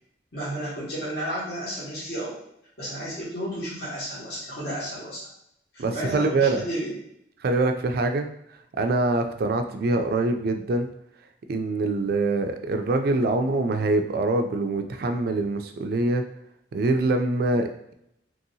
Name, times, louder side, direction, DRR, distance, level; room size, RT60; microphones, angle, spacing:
voice 1, 0.3-2.3 2.8-5.2 5.7-7.0, equal, 60° left, -10 dB, 1.3 m, -32 dB
voice 2, 5.8-6.6 7.4-8.3 8.8-10.9 11.5-16.2 16.7-17.9, right 2 dB, 50° right, 6 dB, 0.3 m, -24 dB
2.9 x 2.7 x 2.7 m, 0.76 s
head